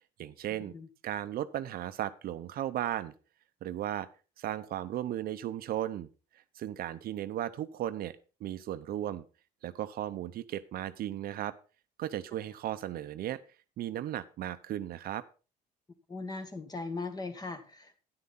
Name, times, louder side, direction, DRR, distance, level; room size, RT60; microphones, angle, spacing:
voice 1, 0.2-0.8 1.0-3.1 3.6-4.1 4.4-6.1 6.5-9.3 9.6-11.5 12.0-13.4 13.8-15.2, right 12 dB, 60° right, 12 dB, 0.7 m, -36 dB
voice 2, 16.1-18.0, left 3 dB, 25° left, 8 dB, 1.7 m, -39 dB
9.8 x 9.7 x 4.1 m, 0.33 s
cardioid pair, 110°, 17 cm